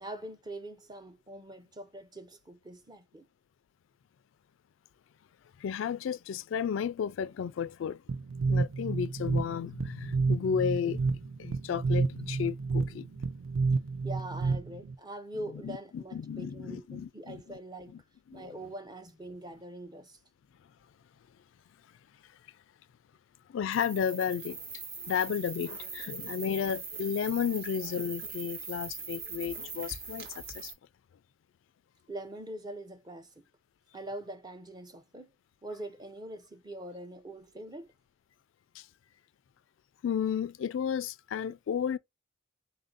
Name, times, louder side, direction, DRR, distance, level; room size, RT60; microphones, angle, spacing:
voice 1, 0.0-3.3 14.0-17.9 18.3-20.2 32.1-33.5 33.9-35.3 35.6-37.9, right 1 dB, 20° right, 0.6 m, -43 dB
voice 2, 5.6-8.0 8.5-11.1 11.4-13.1 15.6-17.6 17.9-18.0 18.3-18.5 23.5-24.6 25.0-30.7 38.7-38.9 40.0-42.0, left 7 dB, 75° left, 0.3 m, -33 dB
sound 1, 8.1-14.9, right 4 dB, 80° right, 0.5 m, -30 dB
sound 2, 23.7-30.7, right 4 dB, 55° right, 1.1 m, -41 dB
3.8 x 2.6 x 3.7 m
head